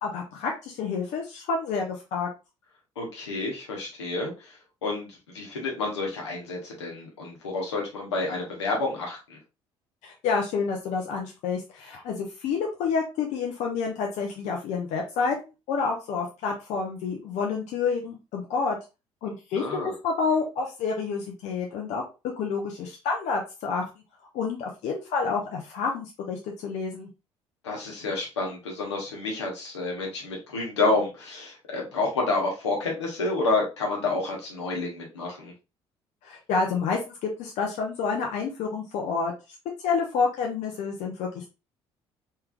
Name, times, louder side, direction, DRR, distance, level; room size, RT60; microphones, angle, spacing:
voice 1, 0.0-2.3 10.0-15.4 15.7-18.8 19.2-22.0 22.4-23.8 24.3-27.1 36.2-39.3 39.8-41.5, left 5 dB, 55° left, 1 dB, 0.7 m, -29 dB
voice 2, 3.0-4.5 4.8-5.1 5.3-9.4 19.6-19.9 27.6-35.5, left 3 dB, 80° left, -1 dB, 1.1 m, -29 dB
3.4 x 3.3 x 2.3 m, 0.28 s
figure-of-eight pair, 50°, 15 cm